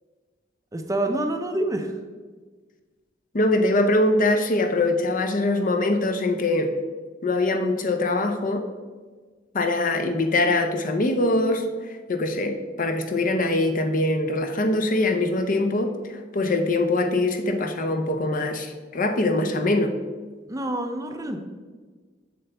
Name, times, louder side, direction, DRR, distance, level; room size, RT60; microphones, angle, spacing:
voice 1, 0.7-1.9 20.5-21.4, right 1 dB, 20° right, 5 dB, 0.6 m, -27 dB
voice 2, 3.3-6.7 7.2-8.6 9.5-11.6 12.1-19.9, left 2 dB, 45° left, 6 dB, 0.7 m, -23 dB
7.7 x 6.8 x 3.4 m, 1.4 s
head